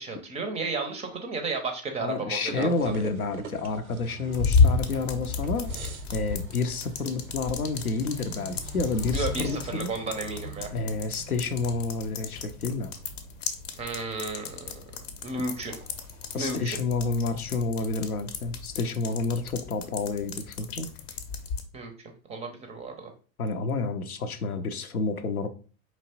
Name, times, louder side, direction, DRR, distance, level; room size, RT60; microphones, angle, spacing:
voice 1, 0.0-2.7 9.1-10.7 13.8-14.8 15.2-15.7 16.4-16.8 21.7-21.9 22.3-23.1, right 3 dB, 15° right, 5 dB, 0.4 m, -33 dB
voice 2, 2.0-5.7 6.1-9.9 10.7-12.9 16.3-20.9 23.4-25.5, left 3 dB, 85° left, 9 dB, 0.5 m, -29 dB
sound 1, 2.5-18.8, right 5 dB, 85° right, 0.5 m, -44 dB
sound 2, 4.3-21.6, left 5 dB, 50° left, 0.7 m, -32 dB
4.4 x 2.9 x 2.8 m, 0.38 s
figure-of-eight pair, 80°, 42 cm